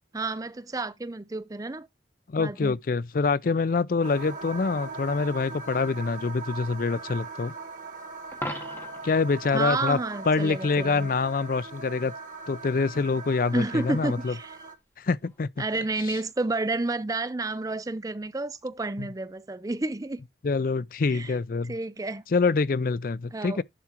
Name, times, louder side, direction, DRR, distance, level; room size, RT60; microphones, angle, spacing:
voice 1, 0.1-1.9 2.4-2.8 9.5-11.1 13.5-14.6 15.6-20.3 21.1-21.4 21.6-22.2 23.3-23.6, right 2 dB, 20° right, 0.5 m, -30 dB
voice 2, 2.3-7.5 9.0-10.0 10.3-12.1 12.5-14.3 15.0-15.5 19.0-19.1 20.4-21.7 22.3-23.6, left 4 dB, 50° left, 0.4 m, -25 dB
sound 1, 4.0-14.7, right 3 dB, 45° right, 1.4 m, -40 dB
Coin (dropping), 8.3-9.2 15.3-15.4, left 1 dB, 15° left, 1.8 m, -36 dB
11.0 x 6.0 x 3.0 m
head